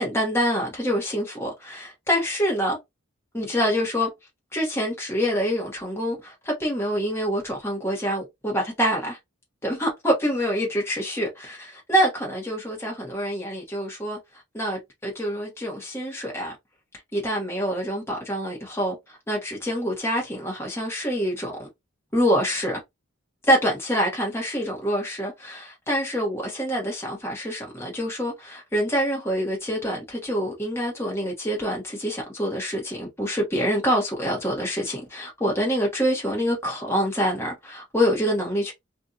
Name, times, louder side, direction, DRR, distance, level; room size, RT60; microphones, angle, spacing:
voice 1, 0.0-2.8 3.3-4.1 4.5-9.2 9.6-14.2 14.5-16.5 17.1-18.9 19.3-21.7 22.1-22.8 23.5-38.7, equal, 10° left, 1.1 m, -26 dB
2.7 x 2.6 x 2.4 m
head